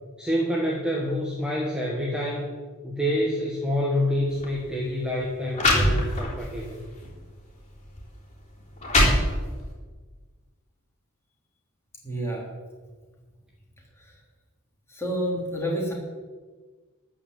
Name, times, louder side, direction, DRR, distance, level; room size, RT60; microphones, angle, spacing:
voice 1, 0.2-2.4 2.8-6.8, left 1 dB, 5° right, -3 dB, 1.5 m, -27 dB
sound 1, 4.3-4.5 5.2-5.3 5.5-6.5 7.0-7.2 8.0-8.1 8.6-9.7, left 1 dB, 30° left, 3.7 m, -22 dB
voice 2, 12.0-12.5 13.8-14.2 14.9-15.9, equal, 10° left, -2 dB, 3.2 m, -30 dB
13.5 x 5.6 x 8.9 m, 1.4 s
head